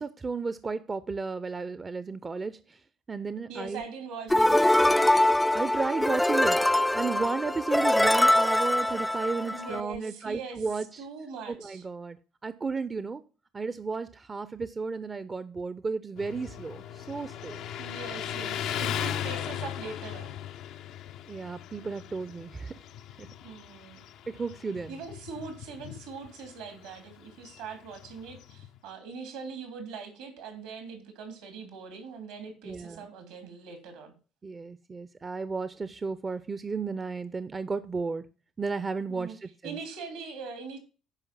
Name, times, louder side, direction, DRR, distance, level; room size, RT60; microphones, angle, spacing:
voice 1, 0.0-2.8 3.1-3.8 5.5-6.6 6.9-11.1 11.5-12.2 12.4-13.2 13.5-17.6 21.3-22.8 23.2-23.3 24.3-25.0 32.6-33.1 34.4-38.2 38.6-39.8, right 4 dB, 30° right, 0.7 m, -33 dB
voice 2, 3.5-5.2 9.5-10.6 11.0-11.8 17.8-20.4 23.4-24.1 24.9-34.1 39.1-39.4 39.6-40.8, right 4 dB, 75° right, 3.0 m, -42 dB
sound 1, 4.3-9.8, left 1 dB, 10° left, 0.4 m, -23 dB
Motorcycle, 16.2-28.8, left 10 dB, 65° left, 0.6 m, -38 dB
10.5 x 5.1 x 7.5 m
hypercardioid pair, 55°, 0 cm